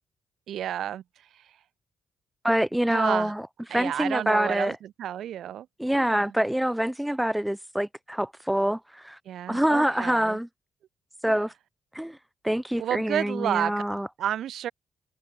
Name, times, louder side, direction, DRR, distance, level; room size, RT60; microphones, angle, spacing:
voice 1, 0.5-1.0 1.3-1.4 2.9-3.3 3.7-5.7 5.9-6.3 9.3-10.4 12.8-13.8 14.2-14.7, right 11 dB, 80° right, 7.8 m, -31 dB
voice 2, 2.4-3.4 3.7-4.8 5.8-9.2 9.5-10.5 11.2-11.5 11.9-12.2 12.4-14.1, equal, 5° right, 7.3 m, -25 dB
cardioid pair, 95°, 0 cm